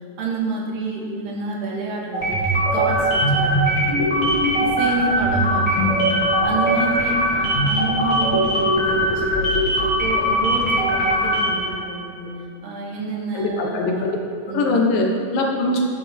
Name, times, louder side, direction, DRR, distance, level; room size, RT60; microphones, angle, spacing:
voice 1, 0.2-2.4 2.7-4.2 4.6-6.2 6.4-9.5 9.8-12.3 12.6-14.1 14.5-14.9, right 3 dB, 75° right, -2 dB, 3.3 m, -29 dB
sound 1, 2.1-11.7, equal, 35° left, 2.1 m, -20 dB
voice 2, 13.3-14.2 14.5-15.8, left 2 dB, 80° left, 1 dB, 2.9 m, -21 dB
12.0 x 10.5 x 3.5 m, 2.6 s
omnidirectional pair, 4.0 m